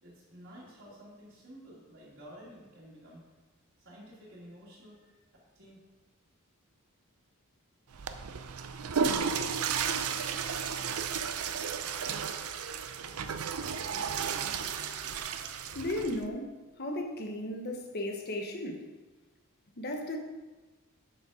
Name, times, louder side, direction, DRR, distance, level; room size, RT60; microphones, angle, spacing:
voice 1, 0.0-3.2 3.8-5.1 5.5-5.8, equal, 55° right, -9 dB, 2.3 m, -51 dB
Water / Toilet flush, 7.9-16.3, right 6 dB, 85° right, 0.6 m, -33 dB
voice 2, 15.7-18.9 19.8-20.2, left 1 dB, 50° left, 3 dB, 1.1 m, -35 dB
7.3 x 6.6 x 4.9 m, 1.2 s
head